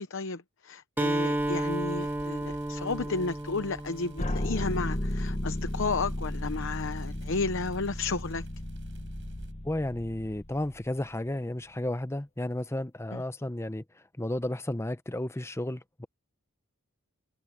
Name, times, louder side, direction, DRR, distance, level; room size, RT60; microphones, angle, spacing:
voice 1, 0.0-8.5 13.1-13.2, left 3 dB, 60° left, 0.8 m, -33 dB
Acoustic guitar, 1.0-4.8, right 1 dB, 10° right, 0.9 m, -32 dB
sound 1, 1.4-9.5, right 1 dB, 60° right, 7.5 m, -49 dB
sound 2, 4.2-11.1, left 1 dB, 30° left, 1.3 m, -34 dB
voice 2, 9.6-13.8 14.2-16.1, left 1 dB, 10° left, 0.7 m, -33 dB
head